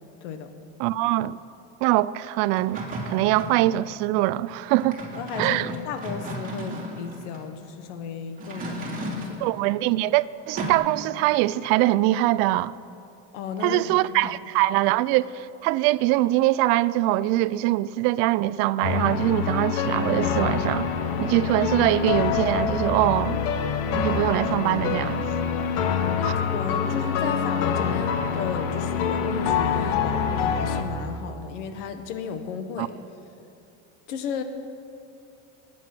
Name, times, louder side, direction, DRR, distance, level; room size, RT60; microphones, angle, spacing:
voice 1, 0.2-0.5 5.2-9.5 13.3-14.3 26.2-32.9 34.1-34.4, left 6 dB, 90° left, 1.5 m, -34 dB
voice 2, 0.8-1.4 1.8-5.0 5.4-5.7 9.4-12.8 13.6-20.9 21.2-23.4 23.9-25.2 26.2-26.3 32.8-32.9, right 16 dB, 65° right, 0.5 m, -23 dB
sound 1, 2.5-3.7 4.7-7.4 8.4-9.4 10.5-10.7, equal, 25° right, 3.0 m, -34 dB
sound 2, 18.8-30.8, left 6 dB, 65° left, 1.5 m, -25 dB
20.0 x 9.4 x 6.1 m
supercardioid pair, 135°, 35 cm